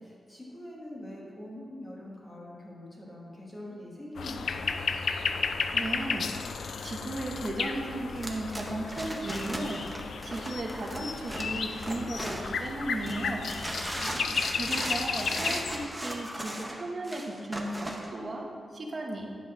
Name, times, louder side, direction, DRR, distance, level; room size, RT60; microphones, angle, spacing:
voice 1, 0.0-4.8 13.9-14.4, left 1 dB, 20° left, -4 dB, 1.5 m, -44 dB
sound 1, 4.2-15.9, left 5 dB, 70° left, 0.4 m, -33 dB
voice 2, 5.7-6.3 6.8-9.9 10.2-13.5 14.6-18.5 18.7-19.3, right 2 dB, 35° right, 1 dB, 0.9 m, -35 dB
sound 2, 8.2-12.7 13.0-18.1, right 1 dB, 5° right, 0.7 m, -37 dB
9.7 x 4.0 x 6.0 m, 2.2 s
wide cardioid pair, 175°, 0 cm